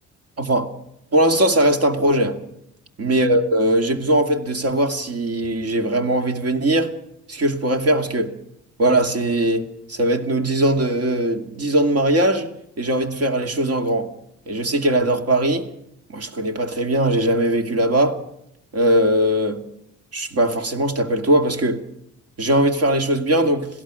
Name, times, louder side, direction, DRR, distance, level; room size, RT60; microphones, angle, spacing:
voice 1, 0.4-0.7 1.1-2.4 3.0-6.9 7.3-8.3 8.8-12.5 12.8-14.1 14.5-15.7 16.1-18.2 18.7-19.6 20.1-21.8 22.4-23.7, right 1 dB, 55° right, 2.4 m, -20 dB
27.0 x 17.0 x 6.3 m
cardioid pair, 90°, 30 cm